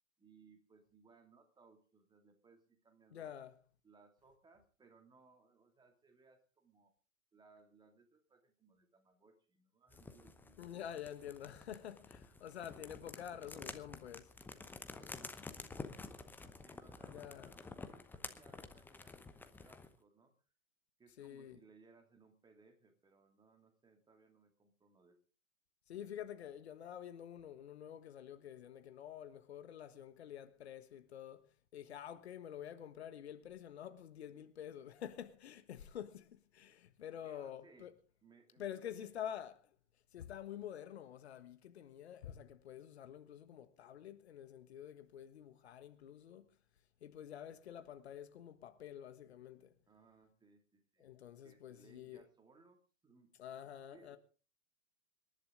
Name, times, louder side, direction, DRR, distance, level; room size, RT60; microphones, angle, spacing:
voice 1, 0.2-3.3 3.8-6.9 7.3-10.6 14.9-20.4 21.0-25.2 37.2-37.9 38.2-38.7 39.0-39.3 49.9-51.1 51.4-53.3 53.9-54.2, right 4 dB, 10° right, 2.7 m, -66 dB
voice 2, 3.1-3.5 10.6-14.3 17.0-17.5 21.2-21.6 25.9-31.4 31.7-37.9 38.6-39.6 40.1-46.4 47.0-49.7 51.0-52.3 53.4-54.2, left 10 dB, 50° left, 1.5 m, -48 dB
sound 1, 9.9-19.9, left 3 dB, 5° left, 0.8 m, -51 dB
26.0 x 11.0 x 3.8 m
figure-of-eight pair, 110°, 40 cm